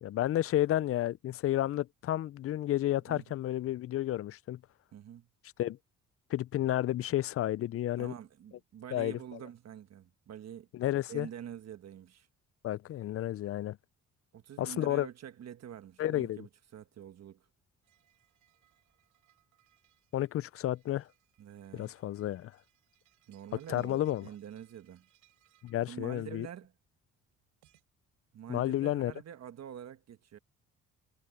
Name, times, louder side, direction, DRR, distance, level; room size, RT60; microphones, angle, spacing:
voice 1, 0.0-4.6 5.6-5.8 6.3-8.1 8.9-9.2 10.7-11.3 12.6-13.8 14.6-15.1 16.0-16.4 20.1-21.1 21.7-22.5 23.7-24.3 25.6-26.5 28.5-29.1, left 13 dB, 50° left, 0.4 m, -31 dB
voice 2, 4.9-5.3 8.0-10.7 11.1-12.3 14.3-17.5 21.4-21.9 23.3-25.1 25.9-26.7 28.3-30.4, right 9 dB, 60° right, 1.2 m, -46 dB
sound 1, 17.8-27.9, right 15 dB, 90° right, 7.3 m, -71 dB
cardioid pair, 90°, 30 cm